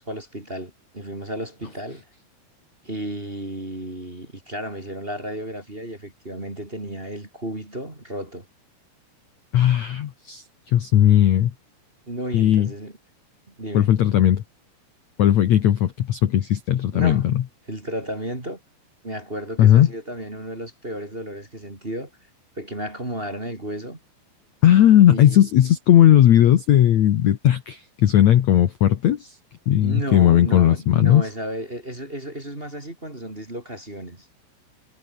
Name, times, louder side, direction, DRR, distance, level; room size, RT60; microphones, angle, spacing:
voice 1, 0.0-2.0 2.8-8.5 12.1-12.9 13.5-13.9 16.9-17.3 17.7-18.6 19.0-22.1 22.6-24.0 25.1-25.5 29.8-34.3, right 1 dB, 15° right, 2.5 m, -33 dB
voice 2, 9.5-11.5 12.3-12.7 13.7-14.4 15.2-17.4 19.6-19.9 24.6-29.4 29.7-31.2, left 11 dB, 75° left, 1.7 m, -17 dB
omnidirectional pair, 5.1 m